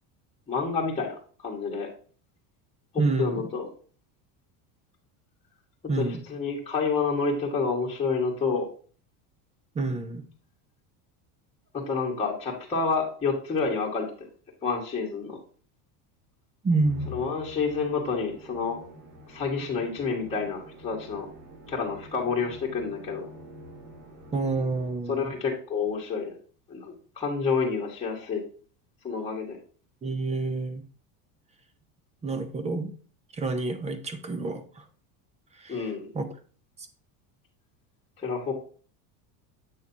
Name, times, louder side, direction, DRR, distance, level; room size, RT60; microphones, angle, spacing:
voice 1, 0.5-1.9 3.2-3.6 6.0-6.1 6.3-8.7 11.7-14.1 14.6-15.4 17.1-18.8 19.3-21.3 21.7-23.2 25.1-26.3 26.7-28.4 29.0-29.6 35.7-36.1 38.2-38.5, left 5 dB, 15° left, -4 dB, 1.7 m, -29 dB
voice 2, 3.0-3.5 5.9-6.2 9.7-10.2 16.6-17.1 24.3-25.3 30.0-30.8 32.2-32.9 33.3-34.8 35.5-36.3 36.8-36.9, right 3 dB, 15° right, 10 dB, 0.6 m, -28 dB
Musical instrument, 16.8-25.3, left 2 dB, 85° right, 3.4 m, -46 dB
8.3 x 6.4 x 2.9 m, 0.41 s
cardioid pair, 160°, 47 cm